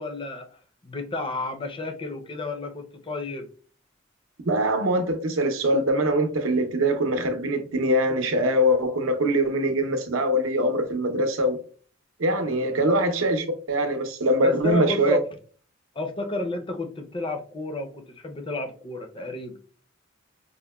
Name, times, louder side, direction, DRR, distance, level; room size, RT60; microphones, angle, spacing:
voice 1, 0.0-3.5 12.4-12.9 14.4-15.2 15.9-19.6, left 2 dB, 25° left, 0.5 m, -32 dB
voice 2, 4.5-11.6 12.2-15.2, equal, 75° right, 0.6 m, -23 dB
4.9 x 2.1 x 2.2 m
head